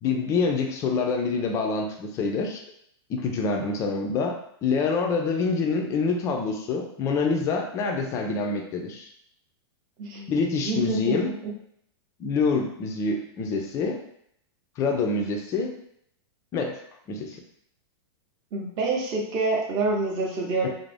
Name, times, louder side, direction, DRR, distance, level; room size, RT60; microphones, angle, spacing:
voice 1, 0.0-2.6 3.1-9.1 10.3-11.3 12.2-14.0 14.8-15.7 16.5-16.8 17.1-17.4 20.6-20.7, left 4 dB, 20° left, 2 dB, 0.3 m, -26 dB
voice 2, 10.0-11.5 18.5-20.7, right 3 dB, 30° right, -1 dB, 0.7 m, -27 dB
2.5 x 2.0 x 3.2 m, 0.70 s
supercardioid pair, 155°, 14 cm